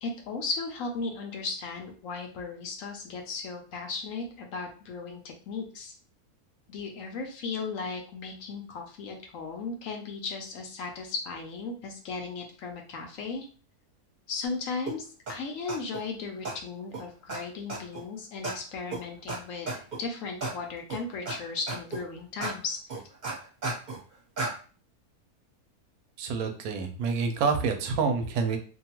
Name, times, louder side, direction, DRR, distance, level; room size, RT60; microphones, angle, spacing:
voice 1, 0.0-5.9 6.7-13.4 14.3-19.7 20.0-22.8, left 4 dB, 70° left, 2 dB, 0.9 m, -36 dB
sound 1, 14.9-15.0 15.3-15.4 15.7-16.0 16.4-16.5 16.9-17.0 17.3-17.4 17.7-18.0 18.4-18.5 18.9-19.0 19.3-19.4 19.7-20.0 20.4-20.5 20.9-21.3 21.7-22.0 22.4-22.5 22.9-24.0 24.4-24.5, right 3 dB, 35° right, 1.0 m, -33 dB
voice 2, 26.2-28.6, right 5 dB, 80° right, 6 dB, 1.0 m, -27 dB
2.7 x 2.2 x 2.9 m, 0.39 s
omnidirectional pair, 1.6 m